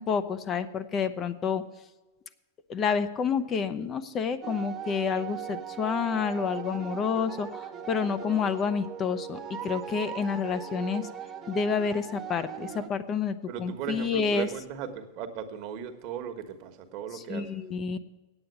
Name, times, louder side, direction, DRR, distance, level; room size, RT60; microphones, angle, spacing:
voice 1, 0.0-1.6 2.7-11.1 11.5-14.5 17.1-18.0, left 6 dB, 30° left, 11 dB, 0.6 m, -29 dB
sound 1, 4.4-12.9, right 8 dB, 25° right, 1.0 m, -39 dB
voice 2, 13.5-17.5, right 8 dB, 50° right, 7 dB, 1.2 m, -37 dB
8.9 x 7.6 x 7.9 m, 1.2 s
hypercardioid pair, 120°, 0 cm